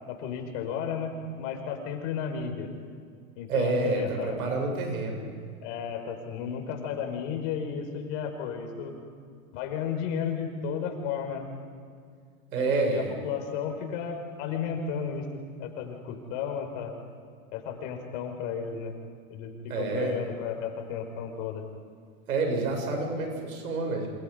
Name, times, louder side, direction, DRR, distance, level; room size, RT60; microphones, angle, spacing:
voice 1, 0.1-1.1 1.4-2.7 3.4-4.4 5.6-8.9 9.5-11.5 12.6-15.3 15.6-16.9 17.5-18.9 19.3-21.6, left 7 dB, 60° left, 4 dB, 5.4 m, -33 dB
voice 2, 3.5-5.2 12.5-13.1 19.7-20.2 22.3-24.1, right 3 dB, 90° right, 2 dB, 7.7 m, -28 dB
28.5 x 27.5 x 5.4 m, 2.2 s
hypercardioid pair, 110°, 42 cm